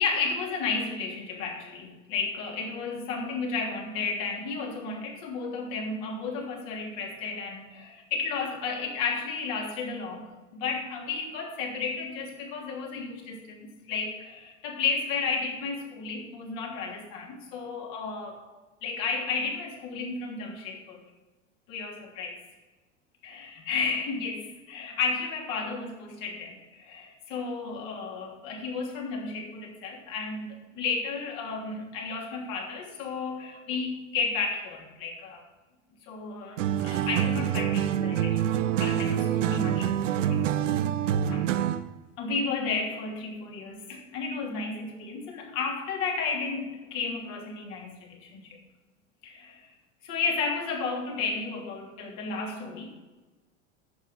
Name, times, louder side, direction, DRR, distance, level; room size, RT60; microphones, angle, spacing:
voice 1, 0.0-18.4 18.8-21.0 21.7-22.4 23.2-35.4 36.0-40.7 41.3-41.4 42.2-48.6 49.2-49.7 50.0-52.9, left 4 dB, 55° left, 0 dB, 3.2 m, -33 dB
sound 1, 36.6-41.9, right 10 dB, 75° right, 0.7 m, -26 dB
11.0 x 7.4 x 5.7 m, 1.2 s
hypercardioid pair, 85°, 37 cm